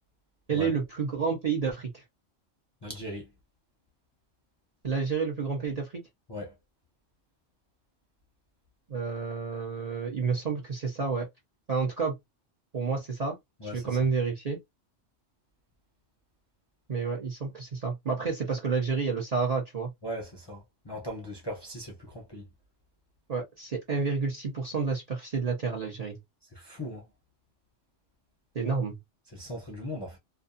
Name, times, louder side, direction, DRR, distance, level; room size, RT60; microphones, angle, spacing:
voice 1, 0.5-2.0 4.8-6.0 8.9-11.3 11.7-12.1 12.7-13.4 13.6-14.6 16.9-19.9 23.3-26.2 28.5-29.0, right 5 dB, 45° right, 0.6 m, -30 dB
voice 2, 2.8-3.3 6.3-6.6 13.6-14.0 20.0-22.5 26.5-27.0 29.3-30.2, equal, 30° left, 0.5 m, -39 dB
2.5 x 2.3 x 2.5 m
omnidirectional pair, 1.3 m